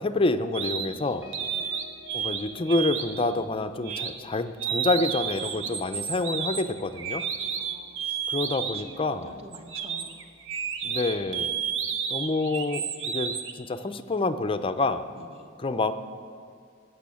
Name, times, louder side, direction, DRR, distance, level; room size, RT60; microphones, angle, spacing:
voice 1, 0.0-1.3 2.1-7.2 8.3-9.4 10.8-11.6 12.1-15.1 15.6-15.9, left 2 dB, 25° left, 9 dB, 0.5 m, -27 dB
sound 1, 0.5-0.9 1.3-2.4 2.7-3.2 3.8-4.1 4.6-8.9 9.5-13.5, right 7 dB, 65° right, 0.9 m, -31 dB
sound 2, 0.9-9.8 10.2-10.5 10.7-11.1, left 2 dB, 10° right, 1.6 m, -53 dB
voice 2, 7.5-8.2 8.6-10.2 15.1-15.5, right 1 dB, 30° right, 4 dB, 1.2 m, -48 dB
18.5 x 6.4 x 8.4 m, 2.3 s
head